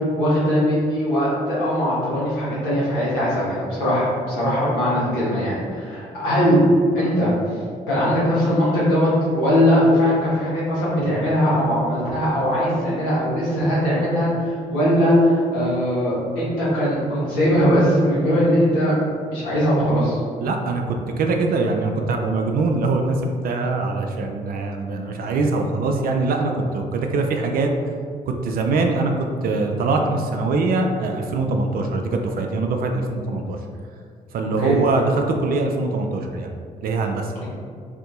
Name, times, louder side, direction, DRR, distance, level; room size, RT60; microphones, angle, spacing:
voice 1, 0.2-6.6 6.9-7.3 7.9-18.9 19.3-20.2 34.4-34.7, equal, 70° left, -8 dB, 1.1 m, -20 dB
voice 2, 20.4-27.7 28.3-29.1 29.4-33.6 34.3-36.5 36.8-37.3, right 3 dB, 45° right, 3 dB, 0.4 m, -23 dB
2.7 x 2.6 x 3.6 m, 2.1 s
figure-of-eight pair, 40°, 21 cm